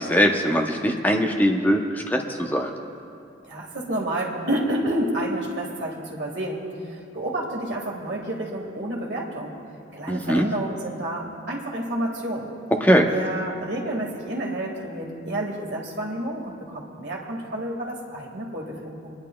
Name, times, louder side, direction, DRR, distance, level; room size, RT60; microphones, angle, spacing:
voice 1, 0.0-2.7 10.1-10.5 12.8-13.1, equal, 10° left, 2 dB, 0.7 m, -21 dB
voice 2, 3.4-9.5 9.9-12.5 13.0-19.1, right 1 dB, 65° right, -1 dB, 1.7 m, -30 dB
29.0 x 10.5 x 2.2 m, 2.6 s
head